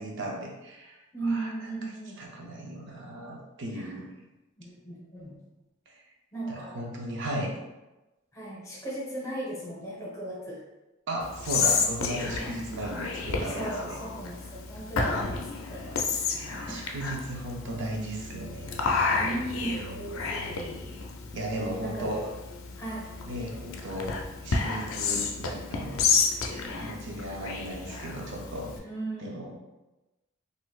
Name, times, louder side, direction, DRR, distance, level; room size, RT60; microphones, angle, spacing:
voice 1, 0.0-1.9 2.2-4.0 5.9-6.0 6.5-7.5 11.1-14.1 16.3-19.2 21.3-22.3 23.2-24.1 24.4-26.4 26.8-28.7 29.2-29.5, right 1 dB, 60° right, -1 dB, 0.6 m, -36 dB
voice 2, 1.1-2.2 3.7-3.9 4.6-5.3 6.3-6.9 8.3-10.6 13.5-16.0 16.5-16.8 19.1-20.7 21.8-22.1 22.8-23.1 26.7-26.8 28.8-29.5, right 2 dB, 15° left, -5 dB, 0.9 m, -36 dB
Whispering, 11.2-28.8, left 4 dB, 75° left, 0.4 m, -31 dB
4.0 x 2.5 x 2.3 m, 1.0 s
head